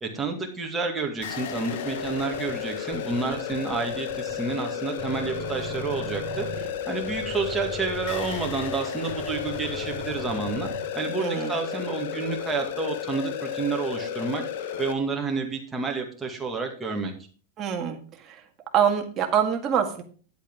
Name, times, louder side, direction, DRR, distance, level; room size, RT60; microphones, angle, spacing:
voice 1, 0.0-10.7 10.9-14.4 14.8-17.1, right 4 dB, 10° right, 1 dB, 2.1 m, -30 dB
sound 1, 1.2-14.9, left 8 dB, 60° left, 1.1 m, -33 dB
sound 2, 1.9-4.7 5.0-11.0, right 5 dB, 45° right, 2.8 m, -40 dB
voice 2, 11.2-11.6 17.6-18.4 18.7-20.0, right 8 dB, 25° right, 3 dB, 1.8 m, -25 dB
10.5 x 8.2 x 3.7 m, 0.41 s
supercardioid pair, 155°, 0 cm